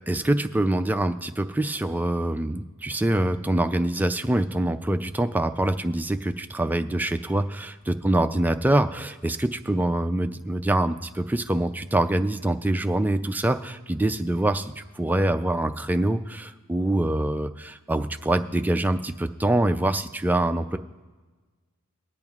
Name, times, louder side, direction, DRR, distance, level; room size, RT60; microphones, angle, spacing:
voice 1, 0.0-20.8, right 1 dB, 10° right, 7 dB, 0.3 m, -25 dB
23.0 x 8.8 x 2.4 m, 1.3 s
head